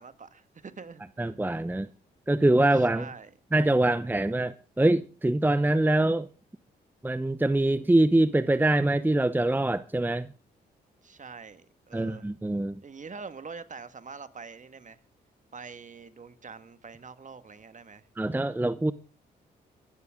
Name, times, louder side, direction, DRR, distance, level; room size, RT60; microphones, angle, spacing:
voice 1, 0.0-1.0 2.7-3.3 11.0-12.3 12.8-15.0 15.5-18.1, right 5 dB, 40° right, 1.7 m, -44 dB
voice 2, 1.2-1.9 2.3-3.1 3.5-6.3 7.0-10.3 11.9-12.8 18.2-18.9, right 1 dB, 10° right, 0.8 m, -24 dB
24.5 x 12.5 x 3.7 m
supercardioid pair, 55°, 19 cm